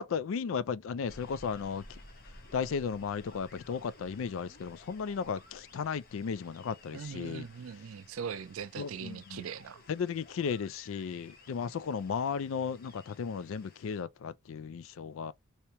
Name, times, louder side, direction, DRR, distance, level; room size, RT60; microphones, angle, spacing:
voice 1, 0.0-2.0 2.5-7.4 8.8-9.5 9.9-15.3, left 6 dB, 75° left, 0.3 m, -35 dB
sound 1, 1.1-14.0, left 2 dB, 45° left, 1.0 m, -55 dB
voice 2, 6.9-9.8, right 7 dB, 90° right, 0.4 m, -40 dB
3.3 x 2.9 x 2.8 m
head